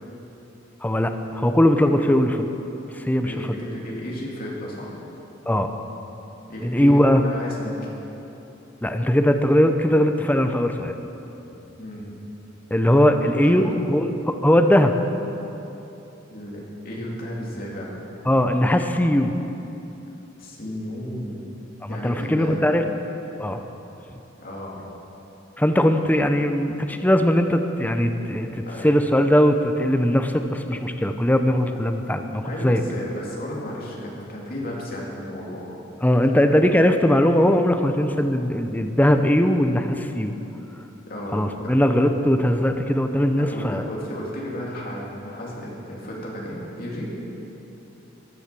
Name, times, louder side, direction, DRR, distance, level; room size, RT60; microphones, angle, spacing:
voice 1, 0.8-2.5 3.0-3.3 5.5-5.7 6.6-7.2 8.8-10.9 12.7-15.0 18.3-19.3 21.8-22.8 23.4-23.6 25.6-28.5 28.8-32.8 36.0-40.3 41.3-43.8, equal, 10° left, 6 dB, 0.7 m, -20 dB
voice 2, 3.2-4.9 6.5-7.9 11.8-12.1 12.9-13.9 16.3-17.9 20.4-21.6 21.9-22.6 24.4-24.9 28.6-28.9 32.4-35.7 36.3-36.5 41.1-42.1 42.8-42.9 43.4-47.1, equal, 50° left, -4 dB, 3.0 m, -33 dB
15.0 x 10.5 x 6.0 m, 3.0 s
head